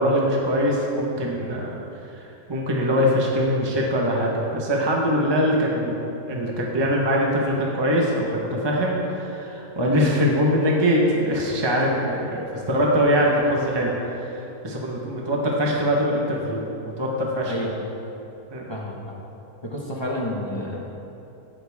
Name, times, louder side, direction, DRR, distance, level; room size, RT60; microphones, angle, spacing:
voice 1, 0.0-1.8 2.5-6.0 6.3-16.7 17.0-17.5 18.5-18.7, equal, 20° right, -2 dB, 1.0 m, -22 dB
voice 2, 17.5-17.9 18.7-19.1 19.6-20.8, equal, 20° left, -4 dB, 1.1 m, -30 dB
14.0 x 8.9 x 3.5 m, 2.9 s
omnidirectional pair, 1.6 m